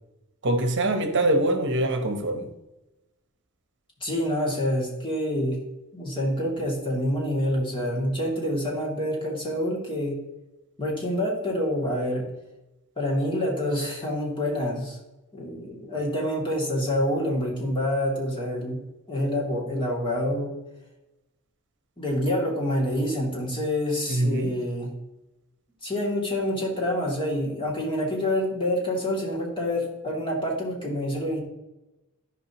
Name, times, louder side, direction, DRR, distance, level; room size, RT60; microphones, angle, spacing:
voice 1, 0.4-2.5 24.1-24.5, right 1 dB, 55° right, 7 dB, 1.0 m, -24 dB
voice 2, 4.0-5.6 5.9-10.2 10.8-12.2 13.0-15.0 15.3-18.8 19.1-20.5 22.0-24.9 25.8-31.4, left 1 dB, 25° left, -3 dB, 2.6 m, -27 dB
13.0 x 5.3 x 3.0 m, 0.98 s
head